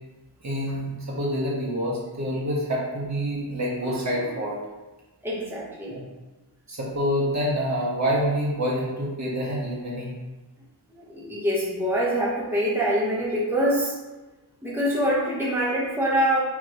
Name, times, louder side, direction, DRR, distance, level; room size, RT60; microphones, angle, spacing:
voice 1, 0.4-4.6 5.9-6.0 6.7-10.1, equal, 40° right, -5 dB, 1.7 m, -27 dB
voice 2, 5.2-6.0 11.1-13.9 14.6-16.4, equal, 5° right, -7 dB, 1.5 m, -24 dB
5.0 x 3.7 x 5.0 m, 1.1 s
wide cardioid pair, 100°, 42 cm